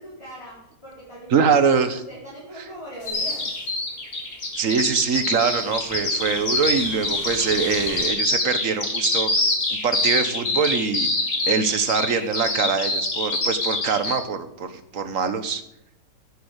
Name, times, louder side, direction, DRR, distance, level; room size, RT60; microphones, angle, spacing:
voice 1, 0.0-1.5 1.9-3.5, equal, 15° left, -9 dB, 5.2 m, -40 dB
voice 2, 1.3-2.0 2.6-2.7 4.6-9.3 9.7-11.1 11.5-15.6, right 5 dB, 50° right, 10 dB, 1.4 m, -23 dB
sound 1, 3.0-3.7 4.5-8.1, left 1 dB, 85° left, 4.4 m, -41 dB
Bird vocalization bird call bird song, 3.1-14.2, left 2 dB, 50° left, 3.4 m, -25 dB
11.0 x 10.5 x 8.1 m, 0.78 s
omnidirectional pair, 1.9 m